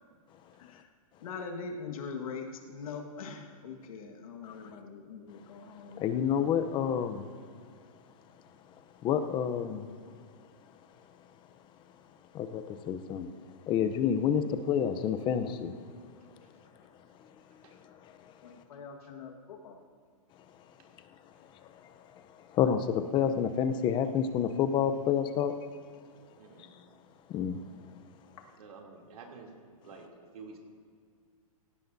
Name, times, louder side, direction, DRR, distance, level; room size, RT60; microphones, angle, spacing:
voice 1, 1.2-6.3 18.4-19.8 28.4-28.5, left 5 dB, 65° left, 2 dB, 1.7 m, -42 dB
voice 2, 6.0-7.3 9.0-9.9 12.3-13.3 13.7-15.8 18.0-18.1 21.6-21.7 22.1-22.2 22.5-25.5 27.3-27.6, left 8 dB, 25° left, 9 dB, 0.7 m, -29 dB
voice 3, 26.4-26.7 28.6-29.5 29.8-30.1 30.3-30.6, right 4 dB, 75° right, 0 dB, 3.1 m, -49 dB
17.0 x 16.5 x 2.7 m, 2.1 s
hypercardioid pair, 140°, 19 cm